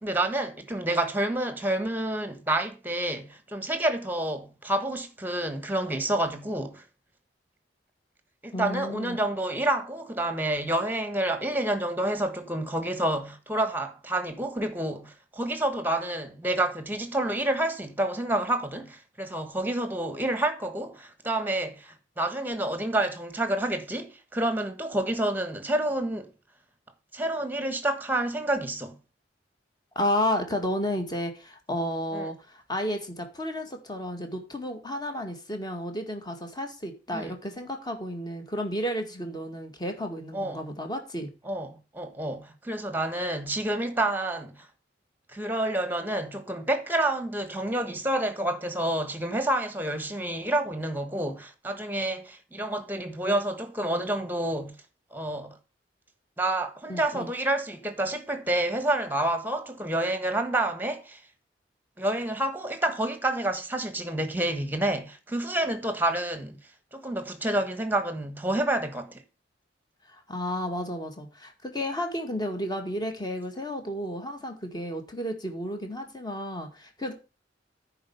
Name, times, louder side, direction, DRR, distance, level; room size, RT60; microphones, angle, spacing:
voice 1, 0.0-6.8 8.4-26.3 27.1-29.0 32.1-32.3 37.1-37.3 40.3-40.6 41.4-44.7 45.3-54.8 55.1-55.6 56.4-61.2 62.0-66.6 66.9-69.2, right 1 dB, 10° right, 1.3 m, -29 dB
voice 2, 8.5-9.2 30.0-41.3 56.9-57.3 70.1-77.1, left 1 dB, 25° left, 1.9 m, -32 dB
10.0 x 4.5 x 6.9 m
head